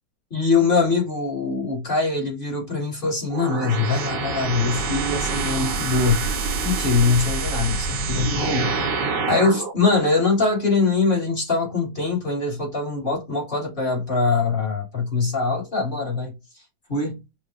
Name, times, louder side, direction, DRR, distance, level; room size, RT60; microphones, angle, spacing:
voice 1, 0.3-6.3 6.6-8.9 9.3-16.3 16.9-17.2, left 4 dB, 30° left, 1.5 m, -23 dB
sound 1, 3.3-9.7, right 4 dB, 75° right, 1.5 m, -26 dB
5.5 x 2.2 x 2.5 m
omnidirectional pair, 1.9 m